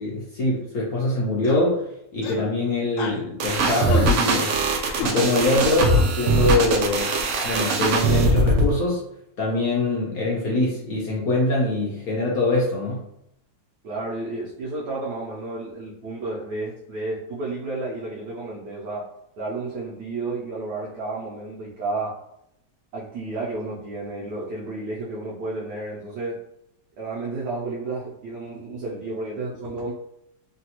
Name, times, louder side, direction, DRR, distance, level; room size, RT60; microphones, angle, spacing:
voice 1, 0.0-1.8 2.1-4.5 5.0-7.1 7.4-9.0 9.4-13.0, left 2 dB, 65° left, -5 dB, 1.0 m, -23 dB
sound 1, 1.4-1.7 2.2-2.5 3.0-3.2 3.9-4.1 5.0-5.1 5.9-6.1, left 5 dB, 85° left, 1.3 m, -31 dB
sound 2, 3.4-8.7, right 2 dB, 85° right, 0.7 m, -21 dB
voice 2, 13.8-19.1 19.4-22.2 22.9-26.4 27.0-29.9, right 2 dB, 70° right, -5 dB, 1.1 m, -31 dB
3.2 x 2.3 x 2.8 m, 0.79 s
omnidirectional pair, 2.0 m